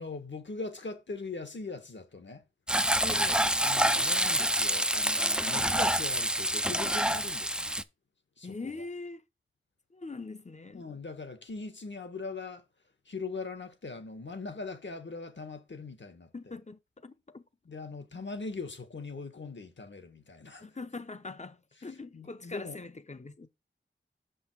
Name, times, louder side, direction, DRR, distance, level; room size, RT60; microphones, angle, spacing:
voice 1, 0.0-2.4 3.6-7.8 8.4-8.9 10.7-12.6 13.0-16.5 17.6-20.6 22.1-22.8, left 3 dB, 65° left, 1.5 m, -41 dB
Frying (food), 2.7-7.8, right 1 dB, 5° right, 0.5 m, -27 dB
voice 2, 3.0-3.5 8.4-9.2 9.9-10.9 16.3-17.4 20.6-23.5, left 3 dB, 35° left, 0.8 m, -42 dB
6.7 x 5.5 x 4.6 m
wide cardioid pair, 75°, 20 cm